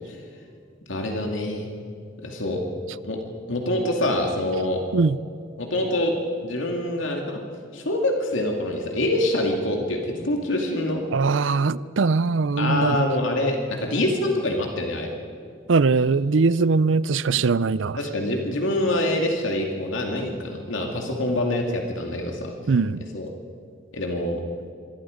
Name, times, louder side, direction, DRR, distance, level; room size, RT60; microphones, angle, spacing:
voice 1, 0.9-1.7 2.2-2.6 3.0-3.2 3.5-4.8 5.6-6.1 6.4-7.4 7.7-11.0 12.6-15.1 18.0-22.5 23.1-23.3 23.9-24.4, left 1 dB, 75° left, 2 dB, 2.4 m, -25 dB
voice 2, 11.1-13.0 15.7-18.0 22.7-23.1, right 4 dB, 70° right, 19 dB, 0.5 m, -21 dB
26.5 x 22.5 x 5.1 m, 2.4 s
head